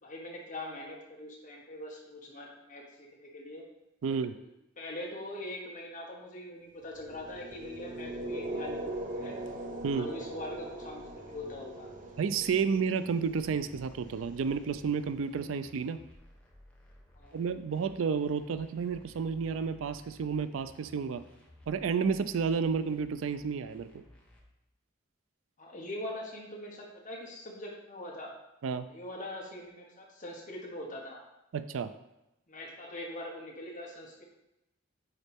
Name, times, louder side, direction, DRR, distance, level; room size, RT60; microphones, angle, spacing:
voice 1, 0.0-3.6 4.1-4.5 4.8-8.8 9.1-9.4 9.9-11.9 17.1-17.4 25.6-28.3 28.9-31.2 32.5-34.2, left 1 dB, 40° left, -2 dB, 1.4 m, -42 dB
voice 2, 4.0-4.4 9.8-10.1 12.2-16.0 17.3-21.2 21.7-23.9 28.6-28.9 31.5-31.9, right 6 dB, 80° right, 12 dB, 0.4 m, -31 dB
sound 1, 7.0-15.1, right 1 dB, 40° right, 0.7 m, -41 dB
sound 2, 13.4-24.4, left 1 dB, 5° left, 1.0 m, -57 dB
9.6 x 4.0 x 3.5 m, 0.90 s
head